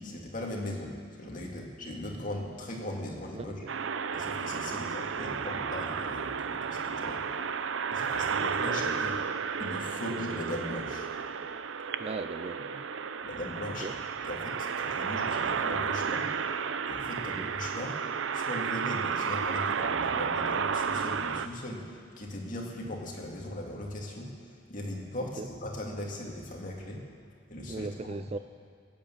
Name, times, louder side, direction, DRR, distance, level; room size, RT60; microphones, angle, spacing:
voice 1, 0.0-3.6 4.1-7.3 7.9-9.2 9.6-11.1 13.2-13.9 14.2-16.3 16.9-18.0 18.3-24.3 24.7-27.0 27.5-28.2, left 1 dB, 45° left, -1 dB, 2.3 m, -38 dB
sound 1, 3.7-21.5, right 6 dB, 80° right, 0.5 m, -32 dB
voice 2, 12.0-12.9 13.8-14.0 17.3-17.5 25.4-25.5 27.7-28.4, right 3 dB, 30° right, 12 dB, 0.3 m, -38 dB
17.0 x 9.5 x 7.3 m, 2.3 s
head